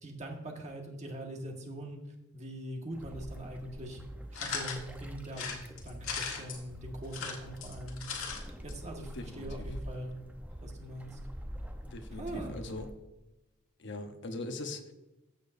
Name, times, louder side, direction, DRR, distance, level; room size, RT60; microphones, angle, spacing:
voice 1, 0.0-2.0 2.3-4.0 4.3-5.6 5.8-8.0 8.6-10.1 10.6-11.2 12.1-12.6, right 1 dB, 35° right, 1 dB, 1.6 m, -42 dB
sound 1, 2.9-12.9, equal, 5° right, 0.8 m, -45 dB
sound 2, 4.3-4.8 5.3-6.6 7.0-8.4 8.7-8.8 9.0-9.1, left 5 dB, 80° left, 1.7 m, -37 dB
voice 2, 9.1-9.7 11.9-12.9 13.8-14.9, left 2 dB, 55° left, 6 dB, 1.0 m, -41 dB
14.5 x 6.9 x 2.6 m, 0.97 s
head